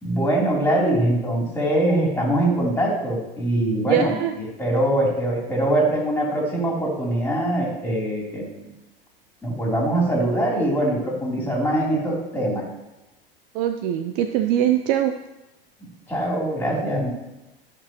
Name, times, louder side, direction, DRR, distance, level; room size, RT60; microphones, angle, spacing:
voice 1, 0.0-4.2 4.6-8.6 9.4-12.6 15.8-17.1, right 1 dB, 5° left, -3 dB, 3.3 m, -23 dB
voice 2, 3.8-4.3 13.5-15.2, right 10 dB, 40° right, 8 dB, 0.5 m, -22 dB
13.0 x 6.1 x 3.0 m, 0.99 s
figure-of-eight pair, 90°, 30 cm